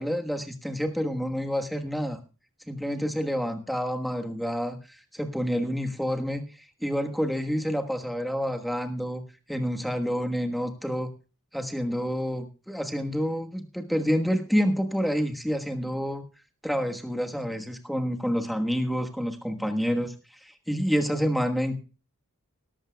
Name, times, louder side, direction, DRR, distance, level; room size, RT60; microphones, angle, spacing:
voice 1, 0.0-2.2 2.7-6.5 6.8-9.2 9.5-11.1 11.5-16.2 16.6-20.1 20.4-21.8, equal, ahead, 4 dB, 1.3 m, -28 dB
18.0 x 14.0 x 2.3 m, 0.33 s
head